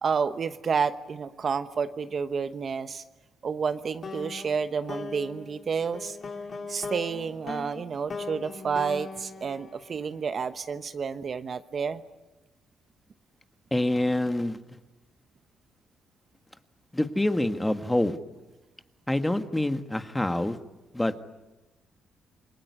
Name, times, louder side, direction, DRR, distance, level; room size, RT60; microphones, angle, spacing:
voice 1, 0.0-3.0 3.4-6.2 6.7-12.0, right 6 dB, 45° right, 10 dB, 1.1 m, -30 dB
sound 1, 4.0-10.4, left 4 dB, 40° left, 3.7 m, -39 dB
voice 2, 13.7-14.6 16.9-18.2 19.1-20.6 20.9-21.1, left 1 dB, 10° left, 8 dB, 1.7 m, -26 dB
28.0 x 21.5 x 9.8 m, 1.1 s
cardioid pair, 90°, 0 cm